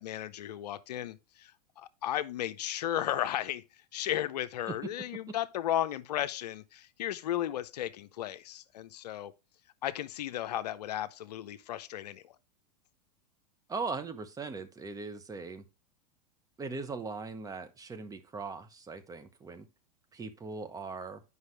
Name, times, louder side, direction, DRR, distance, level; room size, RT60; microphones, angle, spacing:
voice 1, 0.0-3.6 3.9-9.3 9.8-12.4, left 12 dB, 75° left, 0.6 m, -35 dB
voice 2, 13.7-15.6 16.6-19.7 20.1-21.2, right 4 dB, 15° right, 0.9 m, -39 dB
8.1 x 5.4 x 3.2 m
hypercardioid pair, 105°, 21 cm